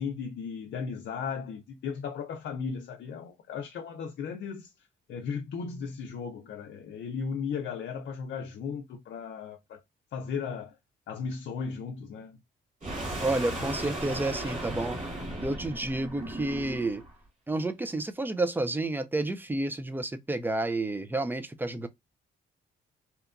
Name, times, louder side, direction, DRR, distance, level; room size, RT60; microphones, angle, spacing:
voice 1, 0.0-4.7 5.1-9.8 10.1-10.8 11.1-12.4, left 6 dB, 65° left, 0.5 m, -36 dB
sound 1, 12.8-17.1, right 1 dB, 40° right, 1.5 m, -36 dB
voice 2, 13.2-15.0 15.4-17.0 17.5-21.9, right 2 dB, 10° right, 0.4 m, -30 dB
2.9 x 2.2 x 2.3 m
cardioid pair, 90°, 20 cm